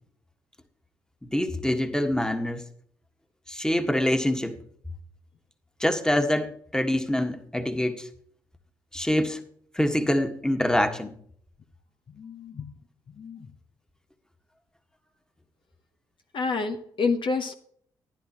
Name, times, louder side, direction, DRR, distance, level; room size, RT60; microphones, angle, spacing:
voice 1, 1.3-2.7 3.5-4.6 5.8-8.1 8.9-9.4 9.7-11.2, left 1 dB, 5° left, 1.6 m, -25 dB
voice 2, 12.2-12.7 13.2-13.5 16.3-17.5, left 4 dB, 50° left, 0.9 m, -28 dB
15.0 x 11.0 x 3.0 m
hypercardioid pair, 45°, 11 cm